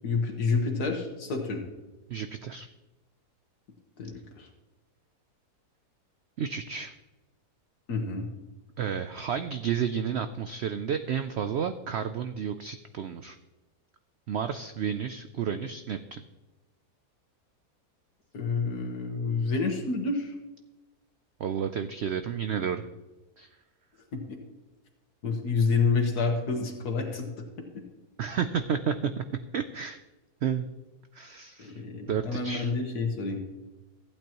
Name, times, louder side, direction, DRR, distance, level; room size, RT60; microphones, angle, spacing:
voice 1, 0.0-1.6 4.0-4.5 7.9-8.3 18.3-20.3 24.1-24.2 25.2-27.3 31.6-33.4, left 4 dB, 75° left, 2 dB, 1.8 m, -28 dB
voice 2, 2.1-2.7 6.4-6.9 8.8-13.4 14.3-16.2 21.4-22.8 23.4-23.5 28.2-29.2 29.5-30.0 30.4-30.7 31.1-31.8 32.1-32.7, right 7 dB, 85° right, 9 dB, 0.5 m, -31 dB
15.0 x 8.7 x 2.9 m, 1.1 s
omnidirectional pair, 1.7 m